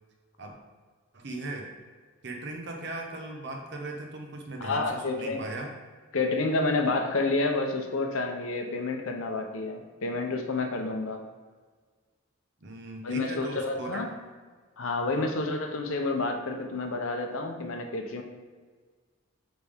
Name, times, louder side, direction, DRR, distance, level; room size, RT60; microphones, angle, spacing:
voice 1, 1.1-1.7 2.2-5.7 12.6-14.0 15.1-15.3, right 2 dB, 55° right, 2 dB, 0.9 m, -38 dB
voice 2, 4.6-5.4 6.1-11.2 13.0-14.1 14.8-18.2, left 3 dB, 70° left, 4 dB, 0.7 m, -29 dB
8.6 x 3.5 x 3.5 m, 1.5 s
head